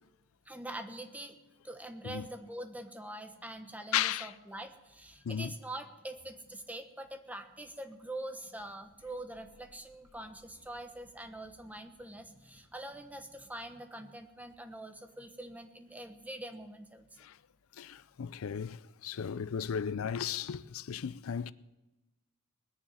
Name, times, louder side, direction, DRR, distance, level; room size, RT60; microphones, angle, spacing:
voice 1, 0.5-1.4 1.6-17.0, right 1 dB, 10° right, 1.2 m, -44 dB
voice 2, 3.9-4.3 5.2-5.5 17.2-17.4 17.7-21.5, left 8 dB, 75° left, 0.5 m, -35 dB
Thunder / Rain, 8.1-13.8, left 1 dB, 15° left, 3.3 m, -68 dB
20.0 x 7.2 x 9.3 m
head